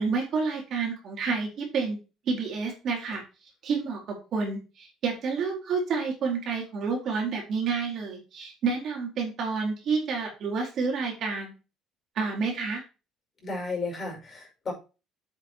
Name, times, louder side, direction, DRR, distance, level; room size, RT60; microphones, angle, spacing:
voice 1, 0.0-2.0 2.3-3.2 3.6-11.5 12.2-12.8, right 5 dB, 45° right, 1 dB, 4.2 m, -29 dB
voice 2, 13.4-14.7, left 3 dB, 25° left, 0 dB, 5.7 m, -33 dB
9.1 x 8.2 x 3.0 m, 0.31 s
cardioid pair, 160°, 0 cm